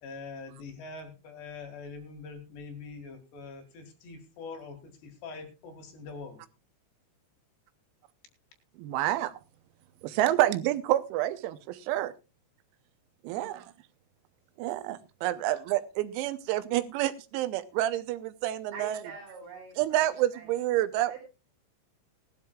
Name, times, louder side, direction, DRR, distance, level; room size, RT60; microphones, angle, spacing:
voice 1, 0.0-6.4, left 4 dB, 60° left, 4 dB, 3.6 m, -43 dB
voice 2, 8.8-9.3 10.0-12.1 13.2-13.7 14.6-19.0 19.8-21.2, right 14 dB, 90° right, 12 dB, 3.6 m, -28 dB
voice 3, 13.3-13.6 18.7-20.1 20.3-20.5 21.1-21.2, right 5 dB, 65° right, 0 dB, 5.2 m, -44 dB
19.5 x 12.5 x 2.3 m, 0.28 s
omnidirectional pair, 6.0 m